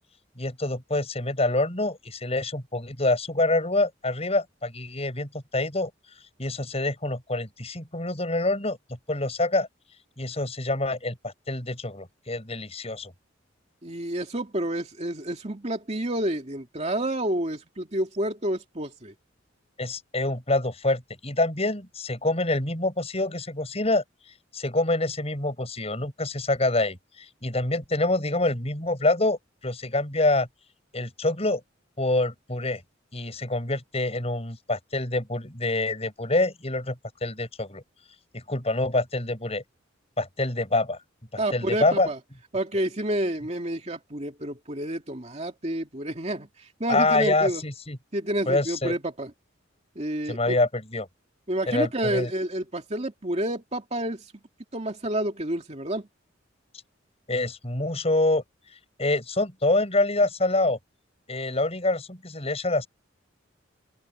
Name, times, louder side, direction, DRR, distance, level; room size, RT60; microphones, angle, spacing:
voice 1, 0.4-5.9 6.4-8.8 9.1-9.7 10.2-13.1 19.8-24.0 24.5-29.4 29.6-30.5 30.9-31.6 32.0-32.8 33.1-37.0 37.2-37.8 38.3-39.6 40.2-41.0 41.3-42.1 46.9-48.0 48.5-48.9 50.3-51.1 51.7-52.3 57.3-58.4 59.0-60.8 61.3-62.9, left 2 dB, 30° left, 7.0 m, -26 dB
voice 2, 13.8-19.1 41.4-42.2 42.5-47.6 48.1-49.3 50.0-50.6 51.5-54.3 54.7-56.1, right 1 dB, 35° right, 2.6 m, -29 dB
open air
head